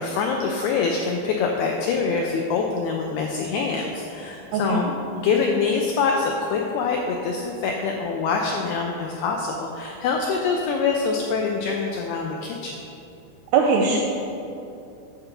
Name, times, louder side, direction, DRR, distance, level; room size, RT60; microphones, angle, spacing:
voice 1, 0.0-4.9 5.1-12.8, left 5 dB, 90° left, 1 dB, 2.2 m, -25 dB
voice 2, 4.5-4.9 13.5-14.0, right 4 dB, 85° right, 0 dB, 2.3 m, -20 dB
10.5 x 4.5 x 6.7 m, 2.7 s
omnidirectional pair, 5.3 m